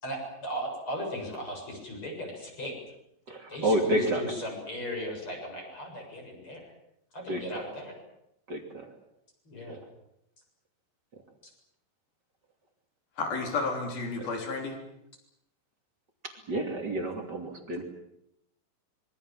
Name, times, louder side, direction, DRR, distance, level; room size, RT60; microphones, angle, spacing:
voice 1, 0.0-2.7 3.5-6.6 7.1-7.9 9.5-9.8, equal, 30° left, 1 dB, 8.3 m, -37 dB
voice 2, 3.3-4.2 7.3-7.6 8.5-8.9 9.7-9.8 14.2-14.3 16.5-17.8, right 1 dB, 30° right, 4 dB, 2.9 m, -30 dB
voice 3, 13.2-14.8, left 3 dB, 65° left, 3 dB, 6.1 m, -31 dB
26.0 x 23.0 x 7.6 m, 0.81 s
omnidirectional pair, 4.7 m